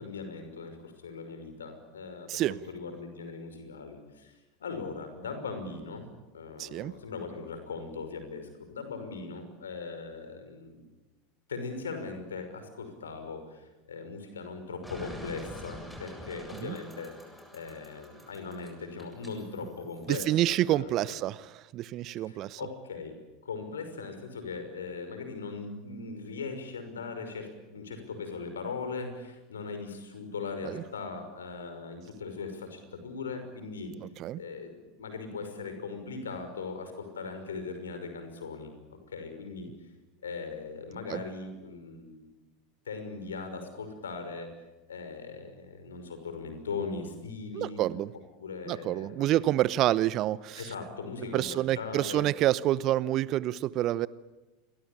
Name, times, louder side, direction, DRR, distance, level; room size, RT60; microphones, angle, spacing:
voice 1, 0.0-4.3 4.6-6.1 6.3-10.8 11.5-17.1 17.5-21.2 22.1-33.9 34.4-39.7 40.2-42.3 42.9-44.5 44.9-47.8 48.4-49.5 50.6-52.2, left 4 dB, 75° left, 8 dB, 5.8 m, -39 dB
voice 2, 6.6-6.9 16.6-16.8 20.1-22.6 30.6-30.8 34.0-34.4 41.1-41.2 47.5-48.1 48.7-50.7 51.3-54.1, right 14 dB, 40° right, 20 dB, 0.9 m, -28 dB
sound 1, 14.8-20.2, left 1 dB, 5° left, 7.6 m, -46 dB
29.0 x 23.5 x 8.9 m, 1.1 s
figure-of-eight pair, 85°, 0 cm